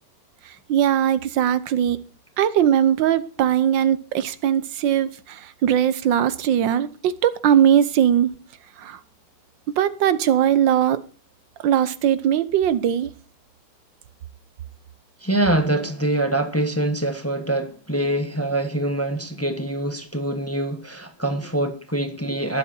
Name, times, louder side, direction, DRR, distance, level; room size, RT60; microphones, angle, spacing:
voice 1, 0.7-2.0 2.4-8.3 8.8-9.0 9.8-11.0 11.6-13.1, right 10 dB, 85° right, 1.6 m, -20 dB
voice 2, 15.2-22.6, right 1 dB, 10° left, 1.1 m, -24 dB
21.5 x 7.7 x 4.4 m
omnidirectional pair, 1.9 m